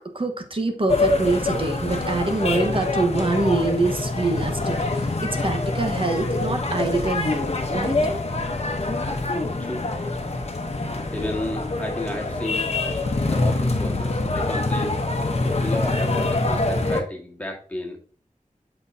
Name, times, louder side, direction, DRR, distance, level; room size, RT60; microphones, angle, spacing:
voice 1, 0.1-8.0, right 3 dB, 40° right, 5 dB, 1.3 m, -25 dB
sound 1, 0.9-17.0, left 2 dB, 50° left, 1.0 m, -25 dB
voice 2, 11.1-12.7 13.2-15.0 15.6-18.0, left 1 dB, 10° left, 0 dB, 1.9 m, -32 dB
7.9 x 4.6 x 2.8 m, 0.42 s
wide cardioid pair, 65°, 14 cm